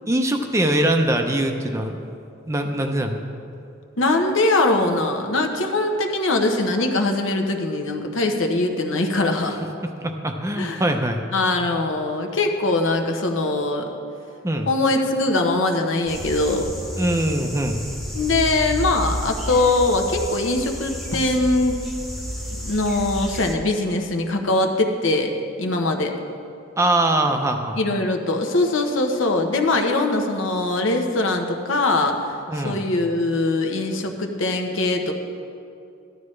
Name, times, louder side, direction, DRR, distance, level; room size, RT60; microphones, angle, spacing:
voice 1, 0.1-2.0 2.5-3.2 10.0-11.2 14.4-14.7 17.0-17.8 26.8-27.8 32.5-32.8, right 1 dB, 15° right, 5 dB, 0.6 m, -22 dB
voice 2, 4.0-9.6 10.6-10.9 11.3-13.9 14.7-16.7 18.1-21.8 22.5-25.3 25.6-26.1 27.8-32.3 32.6-35.1, left 2 dB, 75° left, 3 dB, 1.0 m, -22 dB
sound 1, 16.1-23.6, equal, ahead, 1.0 m, -31 dB
14.0 x 11.5 x 3.2 m, 2.6 s
head